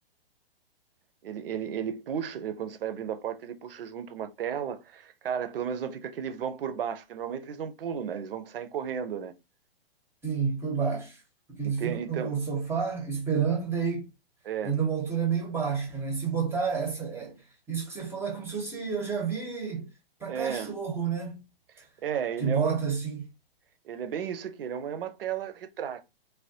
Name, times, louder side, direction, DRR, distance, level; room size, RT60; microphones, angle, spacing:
voice 1, 1.2-9.3 11.6-12.4 14.4-14.8 20.3-20.7 22.0-22.8 23.8-26.0, right 8 dB, 70° right, 0.6 m, -34 dB
voice 2, 10.2-11.2 11.6-14.1 14.6-17.4 17.7-19.9 20.2-21.4 22.4-23.2, right 6 dB, 10° right, 0.7 m, -30 dB
3.3 x 2.2 x 2.7 m
hypercardioid pair, 120°, 30 cm